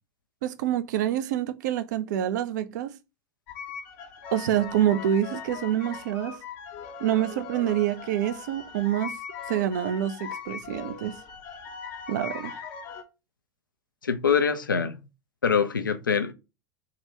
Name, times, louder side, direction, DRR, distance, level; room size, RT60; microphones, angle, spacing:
voice 1, 0.4-3.0 4.3-6.4 7.0-9.2 9.5-11.2 12.1-12.6, right 11 dB, 60° right, 0.4 m, -27 dB
sound 1, 3.5-13.0, left 6 dB, 50° left, 0.7 m, -40 dB
voice 2, 14.0-15.0 15.4-16.3, left 6 dB, 80° left, 0.4 m, -24 dB
3.6 x 2.1 x 2.8 m
figure-of-eight pair, 85°, 11 cm